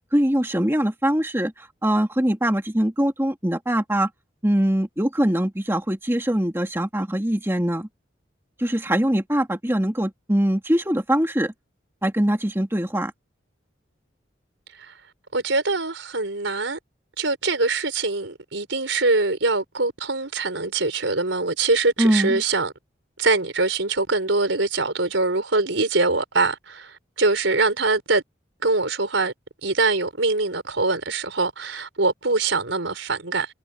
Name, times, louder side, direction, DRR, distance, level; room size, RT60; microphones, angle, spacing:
voice 1, 0.1-4.1 4.4-7.9 8.6-11.5 12.0-13.1 22.0-22.4, right 1 dB, 15° right, 2.0 m, -22 dB
voice 2, 15.3-16.8 17.2-22.7 23.2-28.2 28.6-29.3 29.6-33.5, right 3 dB, 85° right, 4.4 m, -23 dB
head